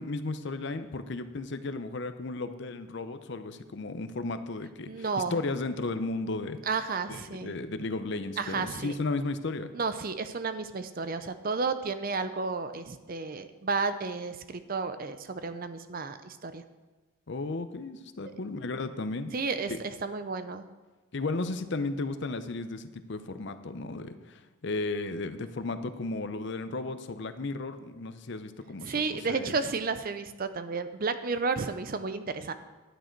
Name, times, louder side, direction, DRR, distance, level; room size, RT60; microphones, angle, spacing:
voice 1, 0.0-6.6 7.1-9.7 17.3-19.3 19.7-19.8 21.1-29.6, left 3 dB, 55° left, 10 dB, 0.6 m, -34 dB
voice 2, 4.9-5.4 6.7-7.5 8.4-8.9 9.7-16.6 19.3-20.6 28.8-32.5, right 4 dB, 40° right, 10 dB, 0.5 m, -32 dB
11.0 x 9.0 x 4.5 m, 1.2 s
head